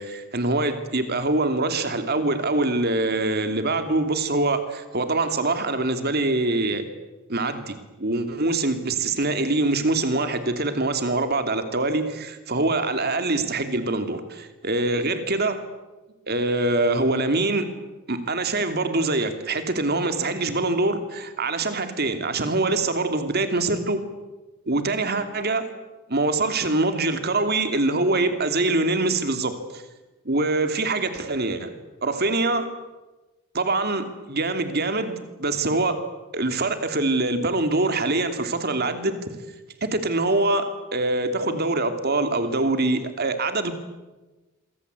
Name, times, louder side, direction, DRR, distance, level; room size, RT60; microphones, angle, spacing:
voice 1, 0.0-6.8 7.3-15.6 16.3-17.7 18.1-24.0 24.7-25.7 26.1-29.8 30.2-31.7 32.0-32.7 33.5-36.0 36.3-39.1 39.8-43.7, right 2 dB, 45° right, 8 dB, 2.9 m, -24 dB
27.0 x 24.0 x 8.4 m, 1.1 s
head